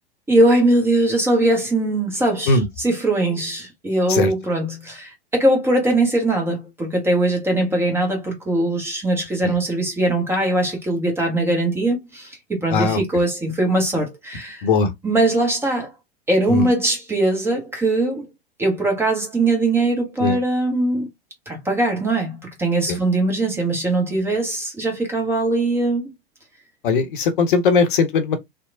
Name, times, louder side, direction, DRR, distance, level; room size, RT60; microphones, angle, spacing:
voice 1, 0.3-14.6 15.0-15.9 16.3-18.3 18.6-21.1 21.5-26.0, right 2 dB, 10° right, 0.6 m, -21 dB
voice 2, 12.7-13.0 14.6-14.9 16.5-16.7 20.2-20.4 22.9-23.0 26.8-28.4, left 4 dB, 55° left, 0.6 m, -19 dB
2.8 x 2.0 x 2.5 m
figure-of-eight pair, 95°, 31 cm